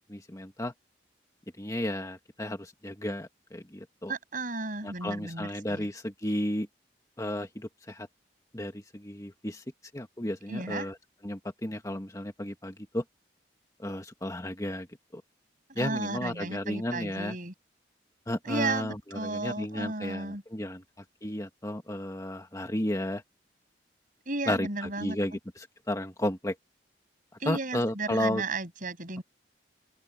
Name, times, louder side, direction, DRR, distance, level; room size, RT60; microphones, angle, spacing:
voice 1, 0.1-0.7 1.6-4.1 4.8-6.7 7.2-8.1 8.5-9.6 9.9-11.0 11.2-13.0 13.8-14.9 15.1-15.2 15.7-17.4 18.3-23.2 24.5-26.5 27.4-28.4, left 1 dB, 20° left, 1.6 m, -33 dB
voice 2, 4.1-5.9 10.5-10.9 15.7-17.5 18.4-20.4 24.3-25.2 27.4-29.2, right 3 dB, 45° right, 7.8 m, -34 dB
open air
head